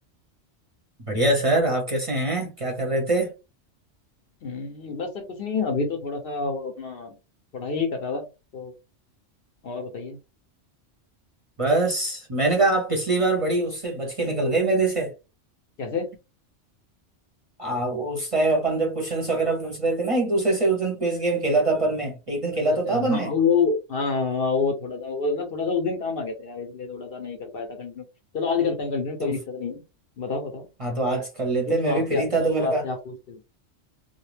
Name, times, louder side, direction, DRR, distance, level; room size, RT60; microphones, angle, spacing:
voice 1, 1.1-3.3 11.6-15.1 17.6-23.3 29.2-29.3 30.8-32.8, right 2 dB, 35° right, 0.7 m, -24 dB
voice 2, 4.4-7.2 7.5-8.3 8.5-8.7 9.6-10.2 15.8-16.1 22.9-28.0 28.3-29.8 30.2-30.7 31.7-33.4, left 5 dB, 60° left, 0.7 m, -28 dB
2.4 x 2.1 x 3.1 m
omnidirectional pair, 1.2 m